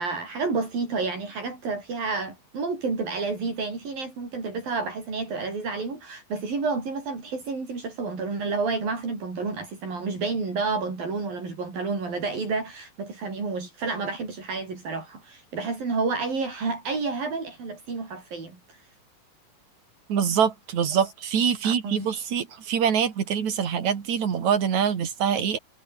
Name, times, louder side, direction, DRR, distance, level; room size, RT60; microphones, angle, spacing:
voice 1, 0.0-18.9 21.6-22.3, right 4 dB, 75° right, 9.4 m, -30 dB
voice 2, 20.1-25.6, right 7 dB, 55° right, 3.8 m, -24 dB
omnidirectional pair, 4.1 m